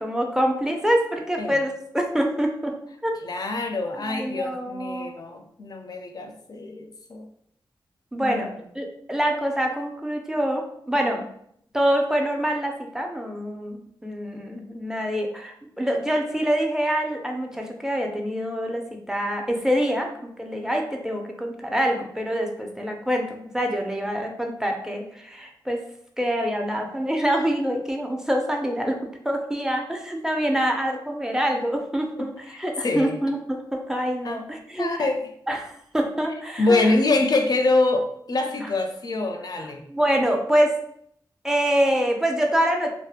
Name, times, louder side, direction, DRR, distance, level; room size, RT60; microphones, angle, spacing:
voice 1, 0.0-2.7 3.0-3.1 4.0-5.1 8.1-8.5 8.7-11.2 11.7-25.8 26.2-35.0 35.5-36.9 39.9-40.7 41.4-42.9, equal, 5° right, 2 dB, 0.4 m, -25 dB
voice 2, 3.2-7.3 8.2-8.5 32.8-33.2 34.2-34.4 34.7-35.2 36.6-39.8, left 2 dB, 50° left, 4 dB, 0.4 m, -25 dB
2.6 x 2.1 x 2.4 m, 0.70 s
cardioid pair, 65°, 9 cm